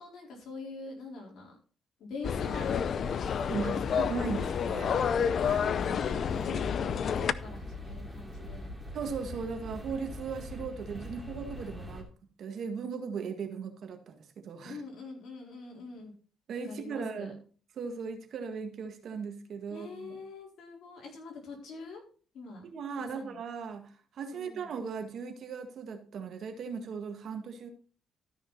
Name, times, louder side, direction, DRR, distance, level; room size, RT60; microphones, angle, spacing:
voice 1, 0.0-1.6 2.0-3.2 3.6-4.0 4.9-8.7 14.6-16.1 16.6-17.3 19.7-22.0 22.3-22.6 23.0-23.4 24.3-24.8, left 4 dB, 75° left, -1 dB, 4.2 m, -44 dB
sound 1, 2.2-7.3, left 7 dB, 55° left, 0.5 m, -29 dB
sound 2, 2.3-12.0, left 1 dB, ahead, 2.7 m, -43 dB
voice 2, 3.5-4.9 5.2-5.6 8.9-12.1 12.4-14.8 16.5-17.4 17.8-20.2 22.6-27.7, right 5 dB, 65° right, 6 dB, 1.7 m, -38 dB
13.0 x 6.1 x 4.1 m, 0.41 s
cardioid pair, 90°, 0 cm